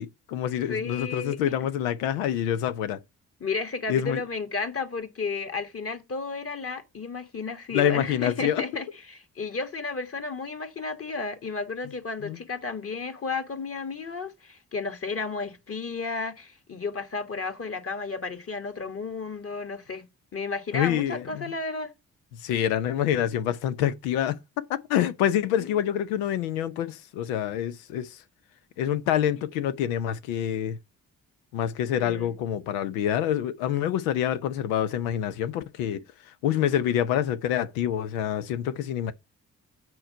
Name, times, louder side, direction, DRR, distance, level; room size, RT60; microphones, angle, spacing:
voice 1, 0.0-3.0 3.9-4.2 7.7-8.6 12.2-12.4 20.7-21.4 22.4-28.1 28.8-30.8 31.5-36.0 36.4-39.1, left 10 dB, 80° left, 0.6 m, -26 dB
voice 2, 0.5-1.4 3.4-20.0 20.3-21.9 25.6-25.8 32.0-32.3, left 4 dB, 35° left, 1.5 m, -33 dB
7.7 x 4.6 x 5.4 m
hypercardioid pair, 40°, 41 cm